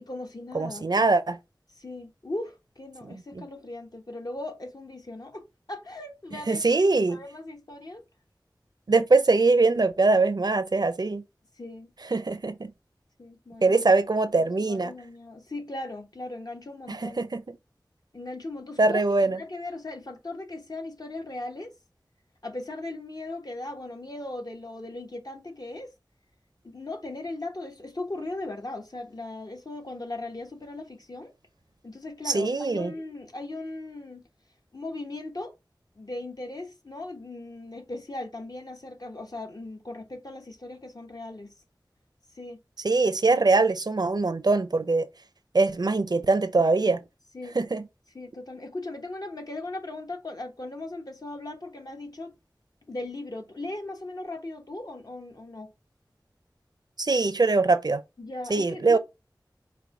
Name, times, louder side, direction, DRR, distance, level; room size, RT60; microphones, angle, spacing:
voice 1, 0.0-0.9 1.8-5.4 5.7-8.0 11.6-11.9 13.2-13.7 14.4-17.2 18.1-21.7 22.4-25.9 26.6-31.3 31.8-34.2 34.7-35.5 36.0-41.5 42.3-42.6 47.3-47.6 48.1-52.3 52.9-55.7 58.2-59.0, left 2 dB, 55° left, 1.0 m, -38 dB
voice 2, 0.5-1.4 3.1-3.2 6.5-7.2 8.9-11.2 12.1-12.7 13.6-14.9 16.9-17.4 18.8-19.4 32.3-32.9 42.8-45.1 45.5-47.0 47.6-47.8 57.0-58.0 58.5-59.0, right 3 dB, 60° right, 0.5 m, -22 dB
4.6 x 2.2 x 3.6 m
wide cardioid pair, 50°, 8 cm